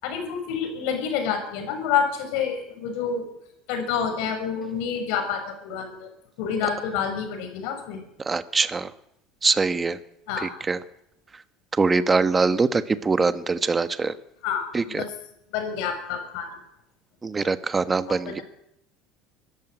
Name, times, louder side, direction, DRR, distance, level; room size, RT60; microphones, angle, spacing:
voice 1, 0.0-3.3 3.7-6.1 6.4-8.0 10.3-10.5 14.4-15.1 15.5-16.5 18.1-18.4, left 7 dB, 75° left, 6 dB, 7.2 m, -28 dB
voice 2, 8.3-8.9 9.4-10.0 10.4-10.8 11.8-14.1 14.7-15.0 17.2-18.4, right 4 dB, 20° right, 12 dB, 1.3 m, -23 dB
24.0 x 14.5 x 9.0 m, 0.79 s
cardioid pair, 130°, 0 cm